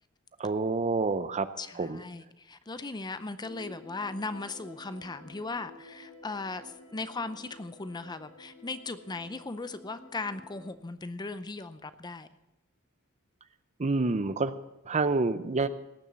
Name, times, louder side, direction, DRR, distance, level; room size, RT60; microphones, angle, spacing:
voice 1, 0.4-1.5 1.8-2.0 13.8-14.5 14.9-15.7, right 3 dB, 30° right, 0.6 m, -27 dB
voice 2, 1.6-12.3, left 3 dB, 20° left, 0.5 m, -38 dB
sound 1, 3.4-10.7, left 1 dB, 90° left, 5.5 m, -51 dB
18.0 x 7.0 x 7.6 m
head